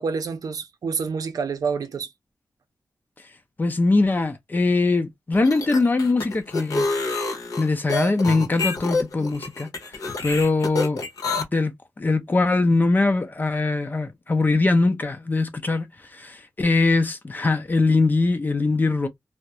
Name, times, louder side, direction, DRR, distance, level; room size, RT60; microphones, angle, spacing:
voice 1, 0.0-2.1, right 5 dB, 80° right, 0.5 m, -28 dB
voice 2, 3.6-6.9 7.6-9.7 10.2-11.0 11.5-11.7 12.0-15.9 16.1-19.1, left 3 dB, 30° left, 0.5 m, -21 dB
sound 1, 5.3-11.4, left 3 dB, 80° left, 0.8 m, -27 dB
2.3 x 2.1 x 2.7 m
wide cardioid pair, 120°, 6 cm